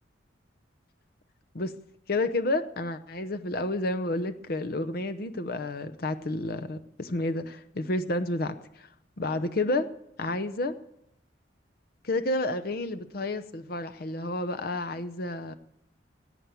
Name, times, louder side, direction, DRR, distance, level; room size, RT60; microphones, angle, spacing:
voice 1, 2.1-8.9 9.2-9.9 10.2-10.7 12.0-15.5, left 2 dB, 50° left, 9 dB, 0.7 m, -30 dB
17.0 x 9.0 x 7.0 m, 0.80 s
head